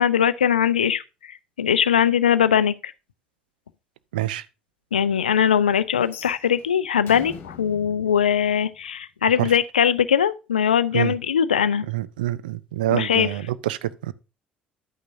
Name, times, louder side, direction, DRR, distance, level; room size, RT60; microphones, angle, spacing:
voice 1, 0.0-2.9 4.9-11.9 12.9-13.3, left 8 dB, 80° left, 0.4 m, -21 dB
voice 2, 4.1-4.5 9.4-9.5 10.9-11.1 11.9-14.1, right 14 dB, 75° right, 0.5 m, -26 dB
sound 1, 6.0-9.1, left 7 dB, 50° left, 1.5 m, -43 dB
11.0 x 8.8 x 2.6 m
figure-of-eight pair, 50°, 5 cm